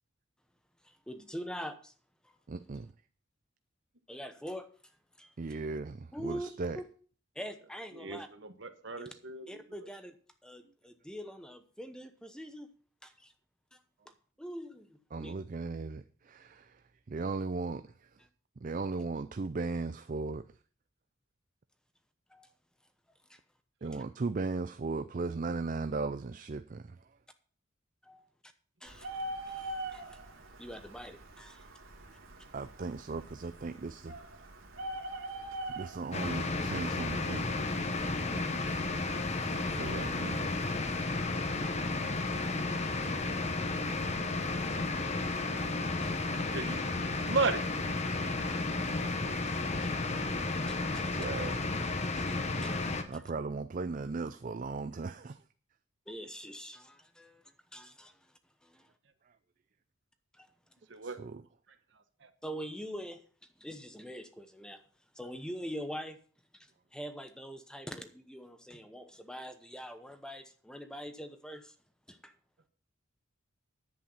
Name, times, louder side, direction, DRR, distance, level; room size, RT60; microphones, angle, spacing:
voice 1, 0.8-1.9 2.2-2.3 4.1-4.7 5.2-5.3 6.1-6.8 7.3-8.3 9.0-9.1 9.5-10.2 10.4-12.7 13.0-13.3 13.7-13.8 14.4-15.3 22.3-22.5 23.3-23.4 28.0-28.5 28.8-29.1 29.5-30.2 30.6-31.6 46.0-46.1 49.8-49.9 50.7-51.1 52.2-52.4 52.6-53.2 56.1-57.4 57.7-58.3 58.6-58.9 60.3-60.5 62.4-63.2 63.6-64.8 65.1-66.2 66.5-71.7 72.1-72.3, equal, 5° left, 0.8 m, -44 dB
voice 2, 2.5-2.9 5.4-6.8 15.1-16.8 17.1-17.9 18.6-20.5 23.8-27.0 32.5-34.2 35.6-37.5 39.7-40.5 51.1-51.6 53.1-55.4 61.0-61.4, right 3 dB, 40° right, 0.4 m, -37 dB
voice 3, 8.6-9.6 46.3-47.0 47.3-47.6 60.9-61.2, right 4 dB, 60° right, 1.2 m, -34 dB
Bird, 28.9-40.0, right 1 dB, 80° right, 2.3 m, -44 dB
sound 1, 36.1-53.0, left 3 dB, 30° left, 1.0 m, -33 dB
10.5 x 8.4 x 5.5 m
head